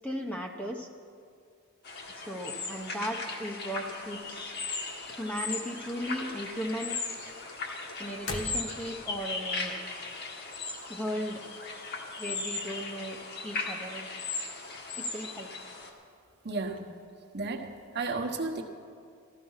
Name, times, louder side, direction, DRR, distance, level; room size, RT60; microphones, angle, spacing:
voice 1, 0.0-0.9 2.1-4.6 5.1-7.0 8.0-9.7 10.9-11.4 12.2-14.2 14.9-15.5, equal, 5° left, 2 dB, 0.7 m, -36 dB
sound 1, 1.8-15.9, left 3 dB, 50° left, 1.5 m, -37 dB
sound 2, 3.9-5.1 5.5-6.0 6.3-9.1, left 2 dB, 70° left, 1.5 m, -41 dB
voice 2, 16.4-16.9 17.3-18.6, right 3 dB, 50° right, 2 dB, 1.1 m, -33 dB
14.5 x 13.0 x 5.6 m, 2.3 s
head